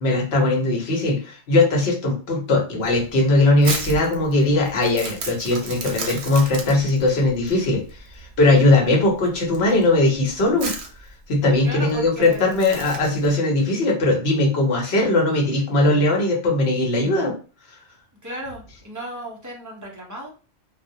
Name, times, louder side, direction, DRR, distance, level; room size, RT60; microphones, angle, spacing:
voice 1, 0.0-7.8 8.1-10.7 11.3-17.3, left 2 dB, 75° left, 0 dB, 1.0 m, -19 dB
Crumpling crinkling, 2.8-13.3, right 4 dB, 90° right, 0.9 m, -34 dB
voice 2, 11.6-12.7 18.2-20.3, right 1 dB, 25° right, -2 dB, 0.5 m, -35 dB
2.2 x 2.1 x 2.6 m, 0.37 s
omnidirectional pair, 1.1 m